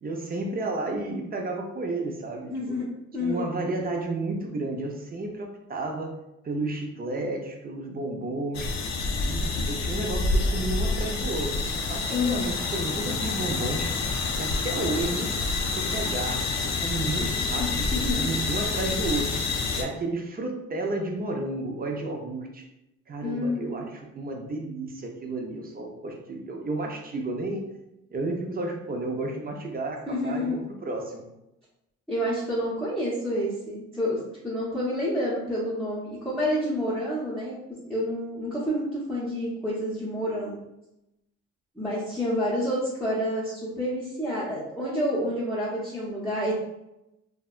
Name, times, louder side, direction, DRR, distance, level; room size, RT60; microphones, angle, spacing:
voice 1, 0.0-2.7 3.2-6.2 6.4-8.7 9.2-13.9 14.4-15.3 15.7-19.4 19.8-22.6 23.1-27.6 28.1-31.3, right 2 dB, 30° right, 2 dB, 0.5 m, -32 dB
voice 2, 2.5-2.9 3.1-3.5 12.1-12.5 17.6-18.3 23.2-23.8 30.1-30.6 32.1-37.6 37.9-40.6 41.8-46.5, left 1 dB, 5° left, -10 dB, 0.8 m, -29 dB
sound 1, 8.5-19.8, left 3 dB, 60° left, 0.4 m, -28 dB
2.6 x 2.2 x 2.4 m, 0.90 s
cardioid pair, 90°, 30 cm